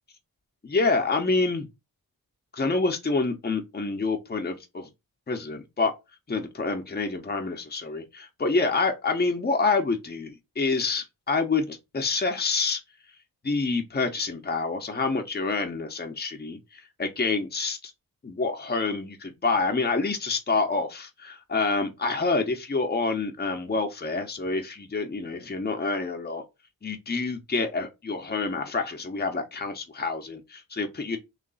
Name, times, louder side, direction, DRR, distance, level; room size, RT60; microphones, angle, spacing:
voice 1, 0.6-1.7 2.5-4.9 5.3-5.9 6.3-12.8 13.4-17.9 18.2-26.4 26.8-31.2, left 3 dB, 25° left, 0.8 m, -27 dB
3.2 x 2.9 x 3.9 m
wide cardioid pair, 95°, 37 cm